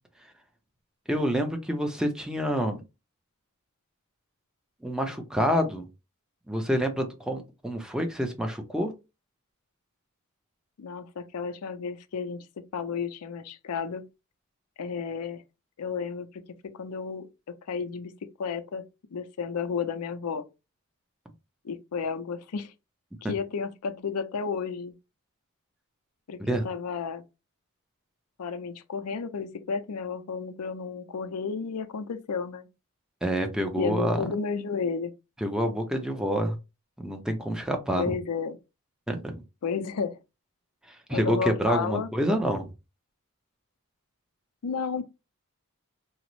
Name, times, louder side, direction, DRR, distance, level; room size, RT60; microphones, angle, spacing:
voice 1, 1.1-2.8 4.8-5.8 6.5-8.9 26.4-26.6 33.2-34.2 35.4-36.6 37.0-38.1 39.1-39.4 40.9-42.7, equal, 5° right, 0.5 m, -27 dB
voice 2, 10.8-14.1 14.8-15.4 15.8-17.3 17.7-18.1 18.4-18.8 19.1-20.4 21.6-22.7 23.3-24.9 26.3-27.2 28.4-32.7 33.7-35.1 38.0-38.6 39.6-40.2 41.1-42.1 44.6-45.0, left 5 dB, 85° left, 0.4 m, -32 dB
3.8 x 2.0 x 3.0 m
head